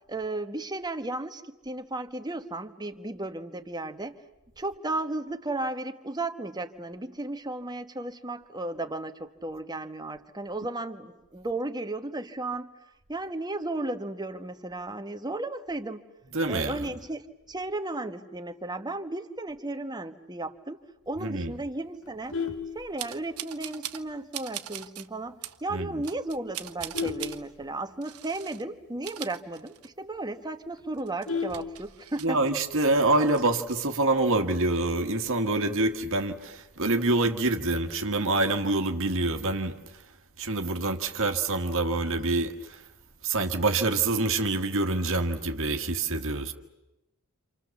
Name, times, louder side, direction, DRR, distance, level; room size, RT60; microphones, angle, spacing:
voice 1, 0.1-4.2 4.6-12.7 13.1-16.0 16.5-22.4 22.7-32.4 33.0-33.1, right 2 dB, 20° right, 1.3 m, -34 dB
voice 2, 16.3-16.9 21.2-21.5 25.7-25.9 32.2-39.7 40.4-42.8 43.2-46.5, right 2 dB, 65° right, 1.6 m, -26 dB
Vehicle horn car horn honking, 22.0-23.5 24.0-24.2 24.5-24.6 25.1-25.2 25.4-25.8 26.4-28.2 28.6-28.7 28.9-29.0 29.5-29.6 29.9-30.0 30.3-32.3 33.5-33.9, left 5 dB, 65° left, 1.9 m, -35 dB
sound 1, 23.0-24.1 24.3-25.1 25.4-25.6 26.0-27.4 28.0-28.6 28.9-30.1 30.4-30.5 31.0-32.9 33.2-33.8, right 12 dB, 85° right, 1.2 m, -40 dB
28.5 x 27.5 x 7.2 m
head